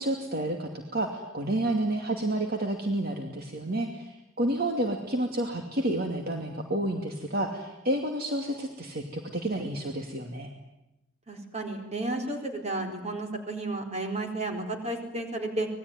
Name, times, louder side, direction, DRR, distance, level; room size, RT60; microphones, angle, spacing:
voice 1, 0.0-10.5, right 1 dB, 50° right, 3 dB, 2.6 m, -30 dB
voice 2, 11.3-15.7, right 2 dB, 35° right, 4 dB, 4.4 m, -32 dB
26.5 x 20.5 x 9.7 m, 0.94 s
head